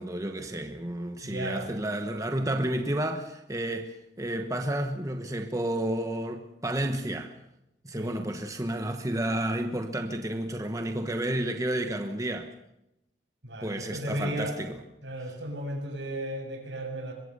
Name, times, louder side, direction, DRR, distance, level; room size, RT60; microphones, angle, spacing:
voice 1, 0.0-7.3 7.8-12.5 13.6-14.8, right 1 dB, 20° right, 1.2 m, -31 dB
voice 2, 1.2-1.7 8.0-8.3 13.4-14.6 15.0-17.1, right 1 dB, 70° right, 7.3 m, -35 dB
23.0 x 22.5 x 6.8 m
head